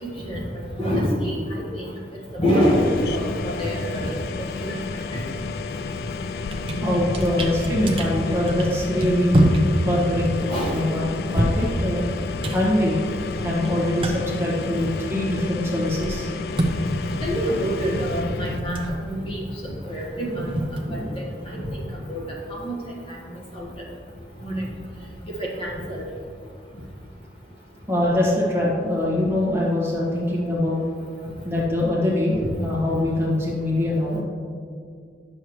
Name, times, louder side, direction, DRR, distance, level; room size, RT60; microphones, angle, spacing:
voice 1, 0.0-0.4 0.8-1.9 2.3-4.1 4.4-4.8 5.1-5.2 10.5-10.8 17.2-20.5 20.9-21.6 22.1-22.8 23.1-23.7 24.4-24.7 25.2-26.0, equal, 30° left, -4 dB, 1.4 m, -26 dB
sound 1, 2.6-18.6, left 4 dB, 55° left, 0.3 m, -32 dB
sound 2, 5.9-6.1 6.4-15.2 15.5-21.5, right 1 dB, 30° right, 0.7 m, -27 dB
voice 2, 6.8-9.4 9.8-12.0 12.5-13.0 13.4-16.3 20.9-21.2 27.9-30.8 31.4-34.2, left 1 dB, 15° right, -6 dB, 1.5 m, -23 dB
10.0 x 6.7 x 3.1 m, 2.2 s
head